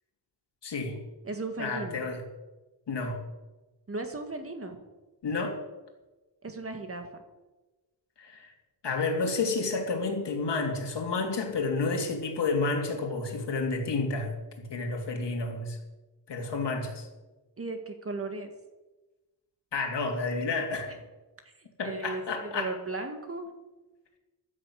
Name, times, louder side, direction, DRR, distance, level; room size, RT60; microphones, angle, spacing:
voice 1, 0.6-1.0 1.6-2.2 2.9-3.2 5.2-5.6 8.2-8.5 8.8-15.8 16.3-17.1 19.7-21.0 21.8-22.7, left 3 dB, 80° left, 2 dB, 3.0 m, -30 dB
voice 2, 1.2-2.1 3.9-4.8 6.4-7.2 17.6-18.5 21.4-23.5, right 3 dB, 35° right, 6 dB, 1.8 m, -36 dB
15.5 x 12.0 x 6.5 m, 1.1 s
wide cardioid pair, 170°, 42 cm